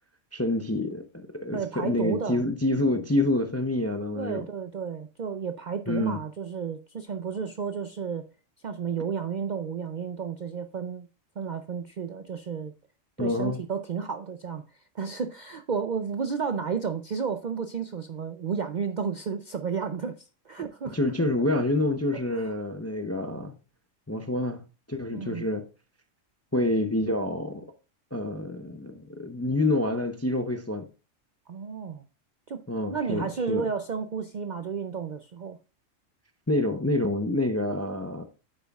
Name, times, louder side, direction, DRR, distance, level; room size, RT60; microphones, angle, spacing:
voice 1, 0.3-4.4 5.9-6.2 13.2-13.6 20.9-23.5 24.1-24.6 24.9-25.7 26.5-27.6 28.1-30.9 32.7-33.6 36.5-38.2, left 1 dB, 15° left, 0.5 m, -27 dB
voice 2, 1.5-2.4 4.1-8.3 8.6-11.1 11.4-12.7 13.2-21.0 21.6-21.7 22.3-22.5 25.1-25.5 31.5-32.0 32.5-32.6 32.9-35.6, right 6 dB, 55° right, 0.5 m, -32 dB
9.5 x 8.0 x 2.4 m
omnidirectional pair, 1.4 m